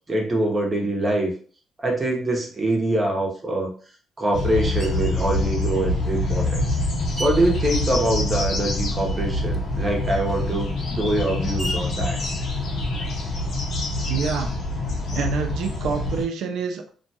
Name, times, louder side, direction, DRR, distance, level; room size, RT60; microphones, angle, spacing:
voice 1, 0.1-1.3 1.8-3.7 4.2-6.7 7.2-12.2, right 1 dB, 25° right, 0 dB, 0.8 m, -24 dB
sound 1, 4.3-16.2, left 1 dB, 65° left, 0.7 m, -26 dB
Screech, 4.8-5.3 6.0-8.7 9.0-13.3, equal, 10° right, 0.4 m, -40 dB
voice 2, 14.0-14.5 15.1-16.9, right 6 dB, 80° right, 4 dB, 0.4 m, -27 dB
2.5 x 2.2 x 2.7 m, 0.43 s
cardioid pair, 90°, 0 cm